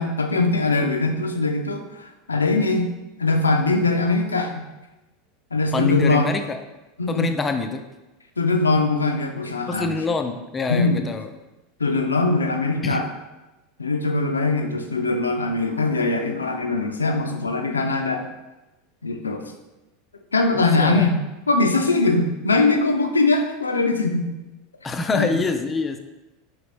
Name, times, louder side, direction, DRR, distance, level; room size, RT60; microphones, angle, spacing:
voice 1, 0.0-4.6 5.5-6.3 7.0-7.3 8.4-10.0 10.7-11.0 11.8-13.1 13.8-18.3 19.0-19.5 20.3-24.3 25.1-25.3, left 3 dB, 80° left, 5 dB, 0.4 m, -21 dB
voice 2, 5.7-6.6 7.1-7.8 9.7-11.3 12.8-13.0 20.5-21.1 24.8-26.0, left 4 dB, 20° left, 7 dB, 0.4 m, -25 dB
5.0 x 3.1 x 3.2 m, 1.1 s
figure-of-eight pair, 80°, 0 cm